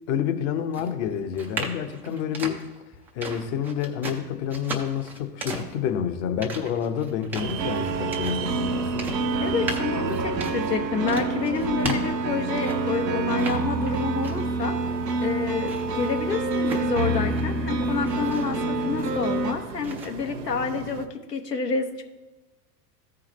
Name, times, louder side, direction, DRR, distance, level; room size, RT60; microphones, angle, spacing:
voice 1, 0.1-2.6 3.1-9.1 11.8-12.0, left 8 dB, 45° left, 0.9 m, -28 dB
sound 1, 0.7-13.0 13.3-14.6 14.9-17.6 17.9-19.4 19.8-20.1, right 2 dB, 5° right, 0.3 m, -37 dB
sound 2, 7.4-21.1, right 6 dB, 50° right, 0.8 m, -38 dB
sound 3, 7.6-19.5, right 3 dB, 85° right, 0.9 m, -27 dB
voice 2, 9.4-14.8 15.2-22.0, left 5 dB, 80° left, 1.1 m, -29 dB
14.5 x 4.9 x 3.1 m
figure-of-eight pair, 90°, 49 cm